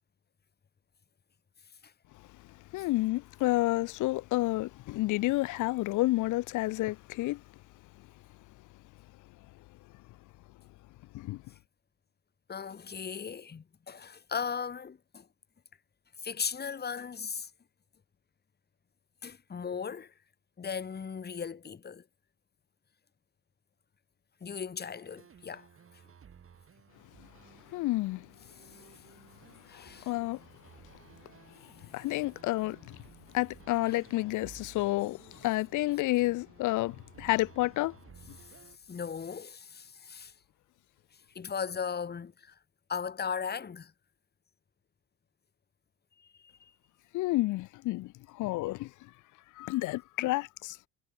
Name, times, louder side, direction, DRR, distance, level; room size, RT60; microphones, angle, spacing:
voice 1, 2.7-7.4 11.1-11.4 27.7-28.3 29.7-30.4 31.9-33.0 33.3-37.9 47.1-48.9 49.6-50.8, left 19 dB, 50° left, 0.5 m, -30 dB
voice 2, 12.5-15.3 16.2-17.5 19.2-20.1 20.6-22.0 24.4-25.7 29.7-30.1 33.8-34.0 38.4-38.5 38.9-40.3 41.3-42.6 42.9-43.9 46.2-46.7, left 6 dB, 25° left, 2.4 m, -37 dB
sound 1, 24.8-38.8, right 7 dB, 35° right, 6.6 m, -57 dB
cardioid pair, 125°, 39 cm